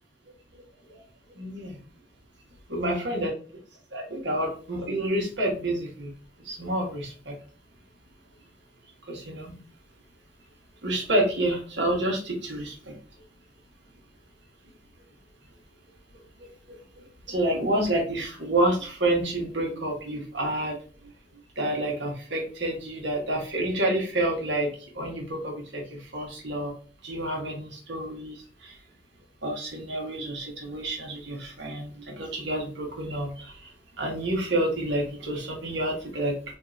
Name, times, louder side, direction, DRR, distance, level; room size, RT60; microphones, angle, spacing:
voice 1, 1.3-1.8 2.7-3.3 3.9-6.1 6.4-7.3 9.1-9.6 10.8-12.9 16.1-20.8 21.6-26.7 27.0-28.8 29.4-33.7 34.0-36.3, right 1 dB, 85° right, 0 dB, 1.3 m, -29 dB
3.6 x 2.7 x 2.5 m, 0.40 s
head